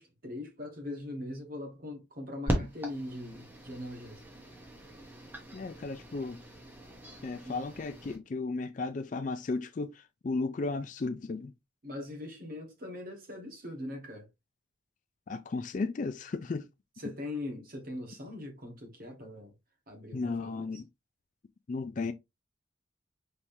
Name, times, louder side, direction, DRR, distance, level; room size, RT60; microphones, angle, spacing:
voice 1, 0.0-4.2 7.4-7.6 11.8-14.3 17.0-19.5 19.9-20.7, left 1 dB, 45° right, 1.4 m, -41 dB
sound 1, 2.5-8.2, equal, 10° right, 0.9 m, -39 dB
voice 2, 5.5-6.4 7.2-9.9 10.2-11.5 15.3-16.7 20.1-20.8 21.7-22.1, left 3 dB, 40° left, 0.3 m, -34 dB
4.4 x 3.6 x 2.6 m
head